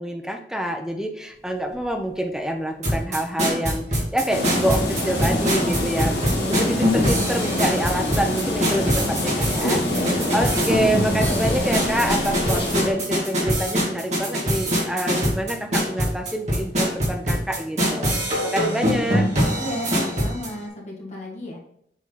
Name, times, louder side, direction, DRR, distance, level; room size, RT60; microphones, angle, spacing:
voice 1, 0.0-9.8 10.3-19.3, equal, 5° right, 4 dB, 0.6 m, -27 dB
sound 1, 2.8-20.5, equal, 40° right, 2.1 m, -24 dB
sound 2, 4.3-12.9, left 1 dB, 70° left, 2.3 m, -26 dB
voice 2, 9.8-10.6 19.6-21.6, left 1 dB, 40° left, -3 dB, 1.9 m, -33 dB
7.4 x 3.9 x 4.0 m, 0.69 s
head